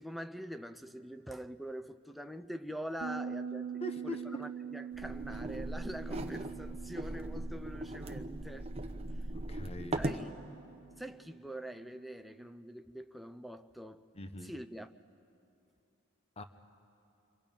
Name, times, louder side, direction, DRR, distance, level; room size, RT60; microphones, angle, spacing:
voice 1, 0.0-8.7 9.2-9.3 9.9-10.4 11.0-14.1 14.4-14.9, equal, ahead, 0.4 m, -44 dB
Bass guitar, 3.0-12.4, right 7 dB, 70° right, 0.7 m, -45 dB
voice 2, 3.8-4.4 9.3-10.0 14.1-14.5 16.4-16.5, left 1 dB, 30° left, 0.8 m, -41 dB
sound 1, 4.9-10.3, right 1 dB, 30° right, 0.9 m, -39 dB
28.5 x 24.5 x 5.3 m
head